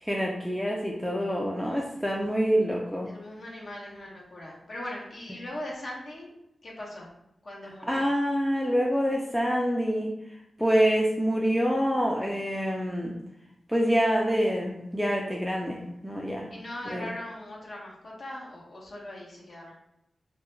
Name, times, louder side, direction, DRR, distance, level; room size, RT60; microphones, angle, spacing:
voice 1, 0.0-3.1 7.6-10.1 10.6-13.2 13.7-16.5 16.8-17.1, equal, ahead, -1 dB, 0.4 m, -26 dB
voice 2, 3.1-6.3 6.6-7.1 7.4-8.0 16.5-19.8, left 1 dB, 65° left, -4 dB, 0.9 m, -40 dB
2.3 x 2.1 x 3.0 m, 0.82 s
cardioid pair, 45°, 0 cm